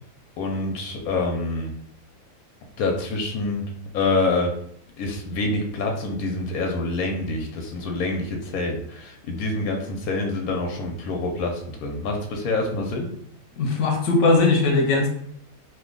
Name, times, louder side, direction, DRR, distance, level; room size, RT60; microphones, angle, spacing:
voice 1, 0.4-1.7 2.8-3.6 3.9-4.5 5.0-13.1, left 2 dB, 90° left, 2 dB, 1.1 m, -26 dB
voice 2, 13.6-15.1, left 3 dB, 65° left, 2 dB, 0.9 m, -19 dB
2.8 x 2.2 x 3.7 m, 0.67 s
omnidirectional pair, 1.5 m